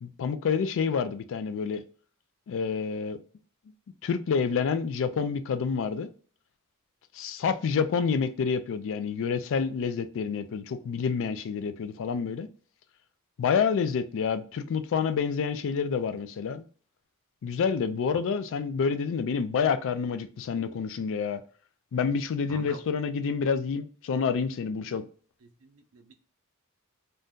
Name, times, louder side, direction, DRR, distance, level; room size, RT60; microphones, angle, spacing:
voice 1, 0.0-1.8 2.5-3.2 4.0-6.1 7.1-12.5 13.4-16.7 17.4-21.4 21.9-25.1, left 6 dB, 60° left, 0.3 m, -28 dB
voice 2, 22.5-22.8 25.4-26.1, right 4 dB, 70° right, 0.5 m, -46 dB
2.6 x 2.2 x 3.5 m
head